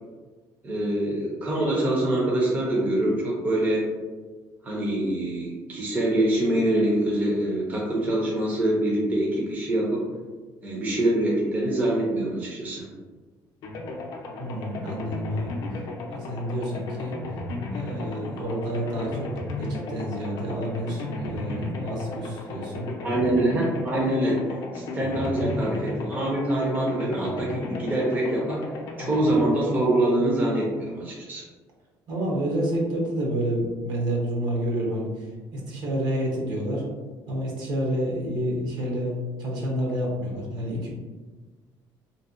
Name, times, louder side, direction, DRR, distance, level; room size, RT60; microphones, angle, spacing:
voice 1, 0.6-3.9 4.6-10.0 10.6-12.9 23.0-28.6 29.0-31.4, right 1 dB, 20° right, -4 dB, 0.4 m, -25 dB
sound 1, 13.6-30.5, left 2 dB, 50° left, 0.4 m, -35 dB
voice 2, 14.4-15.8 16.1-17.1 17.7-19.3 19.6-22.9 32.1-36.8 37.3-40.9, equal, 60° right, -2 dB, 0.7 m, -29 dB
2.7 x 2.1 x 2.4 m, 1.3 s
cardioid pair, 160°, 8 cm